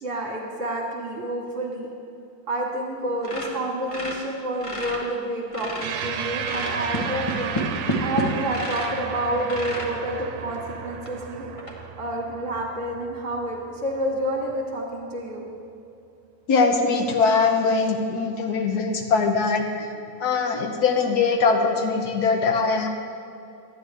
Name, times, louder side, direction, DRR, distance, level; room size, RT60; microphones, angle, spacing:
voice 1, 0.0-1.9 2.5-7.7 8.0-11.5 12.0-15.4, right 1 dB, 50° right, -1 dB, 1.7 m, -29 dB
sound 1, 3.2-5.0 5.4-6.0 6.4-9.0 9.5-9.9 10.5-10.6 11.0-11.1 11.6-11.7, equal, 25° left, 0.9 m, -30 dB
sound 2, 5.8-14.5, right 7 dB, 75° right, 1.2 m, -34 dB
voice 2, 16.5-19.9 20.2-22.9, left 4 dB, 70° left, 4 dB, 1.3 m, -22 dB
12.0 x 9.3 x 3.4 m, 2.6 s
omnidirectional pair, 1.8 m